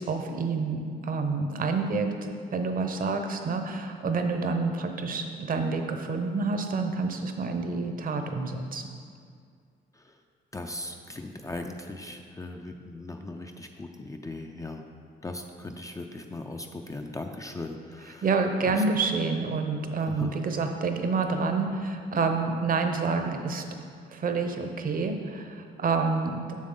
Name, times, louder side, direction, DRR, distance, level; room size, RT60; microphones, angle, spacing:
voice 1, 0.0-2.1 2.5-8.8 18.2-23.6 24.1-26.4, right 4 dB, 45° right, 6 dB, 0.8 m, -28 dB
voice 2, 10.5-14.8 15.2-18.2 18.6-18.8 20.1-20.4, left 2 dB, 15° left, 3 dB, 0.4 m, -38 dB
7.4 x 6.3 x 3.8 m, 2.2 s
cardioid pair, 90°, 20 cm